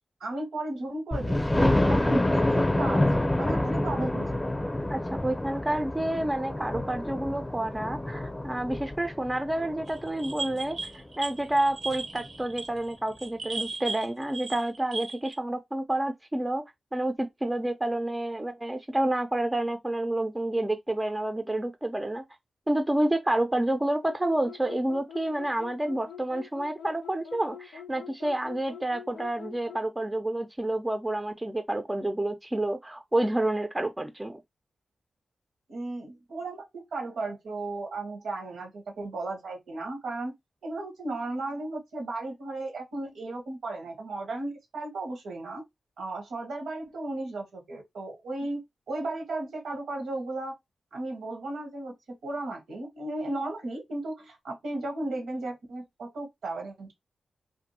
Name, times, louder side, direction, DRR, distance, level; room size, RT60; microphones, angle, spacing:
voice 1, 0.2-3.0 3.4-4.5 35.7-40.3 40.6-45.6 46.0-50.6 50.9-51.9 52.2-56.9, right 2 dB, 80° right, 1.1 m, -35 dB
Thunder, 1.1-10.8 11.4-11.5 11.9-12.0 12.3-12.4, left 1 dB, 20° left, 0.7 m, -28 dB
voice 2, 4.9-10.8 11.2-16.6 16.9-22.2 22.7-34.4, right 1 dB, 20° right, 0.5 m, -29 dB
sound 1, 9.9-15.3, right 3 dB, 65° right, 0.7 m, -37 dB
sound 2, 24.0-29.9, left 8 dB, 85° left, 0.4 m, -45 dB
2.5 x 2.5 x 2.7 m
supercardioid pair, 40°, 0 cm